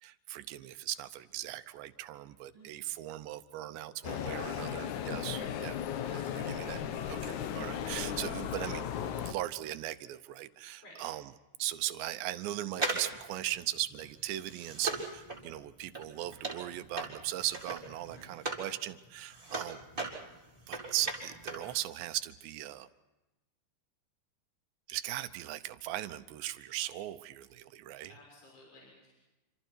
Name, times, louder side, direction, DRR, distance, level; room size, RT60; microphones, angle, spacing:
voice 1, 0.0-8.9 9.2-11.3 11.6-19.8 20.7-22.9 24.9-28.1, right 14 dB, 80° right, 11 dB, 3.0 m, -38 dB
sound 1, 4.0-9.3, left 9 dB, 90° left, 1.7 m, -36 dB
voice 2, 6.2-6.7 10.8-11.0 18.1-18.3 28.1-29.1, left 1 dB, 30° left, -2 dB, 7.6 m, -56 dB
sound 2, 12.7-18.7 19.0-21.7 22.0-22.1, right 3 dB, 10° right, 3.8 m, -38 dB
28.0 x 26.5 x 4.5 m, 1.0 s
omnidirectional pair, 5.2 m